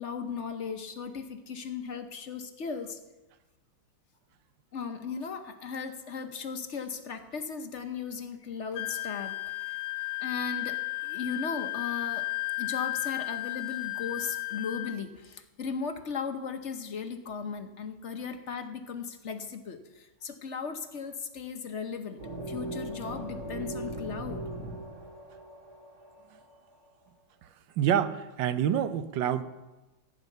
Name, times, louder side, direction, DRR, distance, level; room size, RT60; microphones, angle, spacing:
voice 1, 0.0-3.0 4.7-9.8 10.2-12.3 12.6-22.2 22.5-24.4, left 5 dB, 50° left, 8 dB, 1.0 m, -37 dB
Wind instrument woodwind instrument, 8.7-15.0, left 21 dB, 85° left, 1.4 m, -34 dB
sound 1, 22.2-26.8, right 1 dB, 50° right, 3.0 m, -39 dB
voice 2, 27.8-29.4, right 9 dB, 75° right, 12 dB, 1.5 m, -27 dB
14.5 x 9.9 x 6.6 m, 1.1 s
omnidirectional pair, 2.1 m